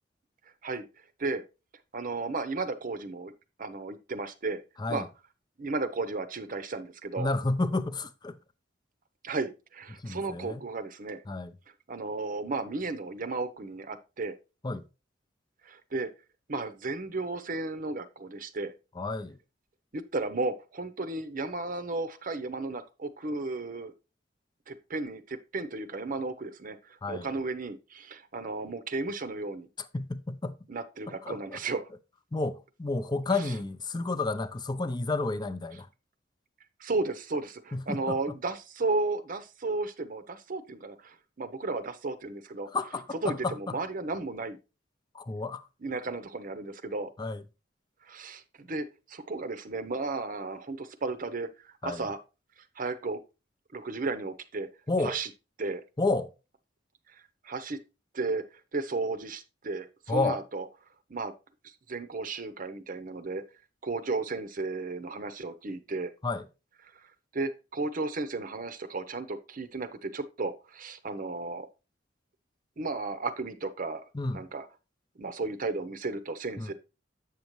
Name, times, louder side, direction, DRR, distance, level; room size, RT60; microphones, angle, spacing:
voice 1, 1.9-3.3 3.6-4.6 4.9-5.1 5.6-7.3 9.2-11.2 11.9-14.4 15.6-16.1 16.5-18.7 19.9-23.9 24.7-29.7 30.7-31.9 36.8-42.7 43.2-44.6 45.8-47.1 48.1-52.2 52.8-53.2 53.7-54.7 55.0-55.3 55.6-55.8 57.4-57.8 58.1-58.4 58.7-60.6 61.1-61.3 61.6-63.4 63.8-66.1 67.3-71.7 72.8-74.0 74.3-74.7 75.2-76.7, right 3 dB, 50° right, 0.7 m, -34 dB
voice 2, 7.2-8.4 10.0-10.6 11.3-11.5 14.6-14.8 19.0-19.4 27.0-27.3 29.8-30.6 31.2-31.6 32.3-35.9 37.7-38.2 42.7-43.8 45.1-45.7 47.2-47.4 51.8-52.1 54.9-55.2 56.0-56.3 60.1-60.4 66.2-66.5 74.1-74.4 76.6-76.7, left 3 dB, 25° left, 0.5 m, -31 dB
8.0 x 6.6 x 3.1 m
head